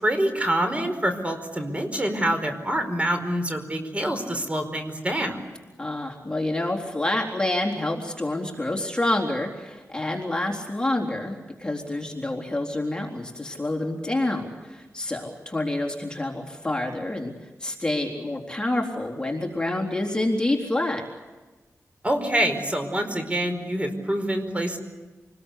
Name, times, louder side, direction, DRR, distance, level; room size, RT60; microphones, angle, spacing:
voice 1, 0.0-5.4 22.0-24.8, right 1 dB, 25° right, 6 dB, 4.8 m, -26 dB
voice 2, 5.8-17.3 17.6-21.0, left 1 dB, 15° left, 0 dB, 3.9 m, -27 dB
28.5 x 21.0 x 8.4 m, 1.2 s
wide cardioid pair, 90°, 6 cm